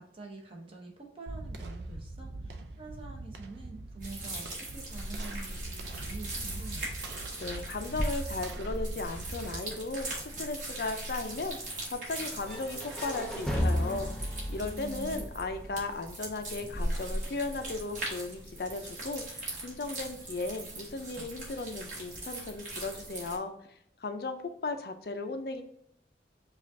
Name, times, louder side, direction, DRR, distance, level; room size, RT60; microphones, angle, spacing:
voice 1, 0.0-6.9 14.6-15.3, right 3 dB, 30° right, 0 dB, 0.8 m, -46 dB
sound 1, 1.3-10.4, right 2 dB, 85° right, 0.5 m, -43 dB
sound 2, 4.0-23.4, right 1 dB, 45° right, 1.4 m, -39 dB
voice 2, 7.4-23.5 24.0-25.6, left 3 dB, 60° left, 7 dB, 0.4 m, -36 dB
sound 3, 12.5-16.4, equal, 5° left, 0.5 m, -34 dB
5.1 x 2.4 x 2.6 m, 0.73 s
head